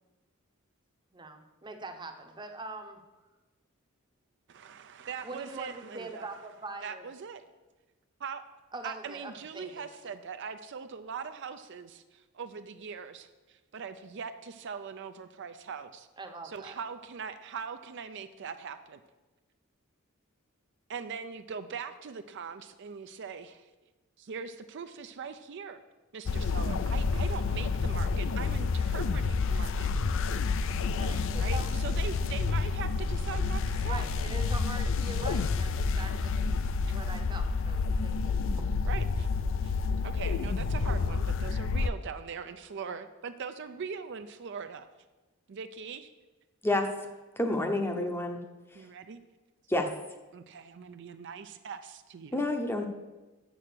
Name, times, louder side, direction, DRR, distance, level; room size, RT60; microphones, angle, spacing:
voice 1, 1.1-3.0 5.2-7.0 8.7-9.8 16.2-16.8 30.6-31.7 33.9-36.6 36.9-38.7, right 2 dB, 20° right, 6 dB, 0.8 m, -43 dB
voice 2, 4.5-6.3 6.8-7.4 8.2-8.4 8.8-16.1 16.4-19.0 20.9-23.7 24.2-25.8 26.1-30.5 30.8-30.9 31.4-34.1 38.8-39.3 39.6-39.7 40.0-44.9 45.5-46.1 47.6-48.0 48.7-49.2 50.3-52.5, right 6 dB, 55° right, 9 dB, 0.4 m, -41 dB
sound 1, 26.3-41.9, left 4 dB, 60° left, 0.4 m, -29 dB
voice 3, 47.4-48.4 49.7-49.9 52.3-52.9, left 1 dB, 10° left, 5 dB, 0.7 m, -28 dB
7.4 x 6.2 x 6.7 m, 1.2 s
head